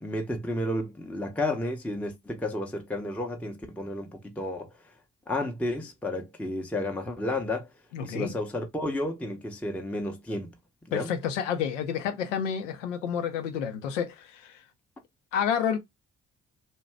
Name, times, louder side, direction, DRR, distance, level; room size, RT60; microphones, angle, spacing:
voice 1, 0.0-4.7 5.3-7.7 8.0-10.5 10.9-11.1, left 1 dB, 5° left, 0.6 m, -32 dB
voice 2, 7.9-8.4 10.9-14.6 15.3-15.8, left 8 dB, 85° left, 0.5 m, -29 dB
2.6 x 2.2 x 3.1 m
figure-of-eight pair, 40°, 36 cm